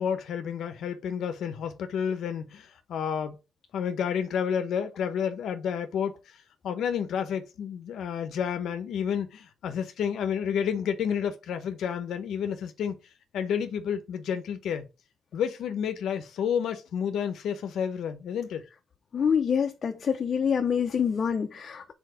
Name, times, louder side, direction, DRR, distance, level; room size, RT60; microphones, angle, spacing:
voice 1, 0.0-3.4 3.7-12.9 13.3-14.9 15.3-18.6, left 8 dB, 75° left, 0.7 m, -30 dB
voice 2, 19.1-21.9, left 7 dB, 45° left, 0.6 m, -26 dB
4.7 x 4.3 x 4.9 m
cardioid pair, 100°, 0 cm